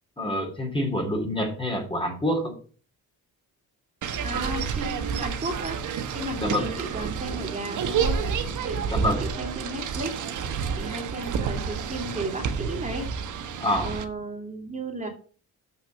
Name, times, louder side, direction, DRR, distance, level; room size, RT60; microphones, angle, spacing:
voice 1, 0.2-2.5 6.4-6.7 8.9-9.2 13.6-13.9, left 1 dB, 15° left, 2 dB, 3.0 m, -27 dB
sound 1, 4.0-14.1, right 6 dB, 60° right, 1.4 m, -29 dB
voice 2, 4.2-8.2 8.6-8.8 9.2-10.2 10.7-13.1 13.8-15.1, right 2 dB, 20° right, 1 dB, 3.1 m, -34 dB
7.2 x 6.3 x 7.0 m, 0.41 s
cardioid pair, 100°, 33 cm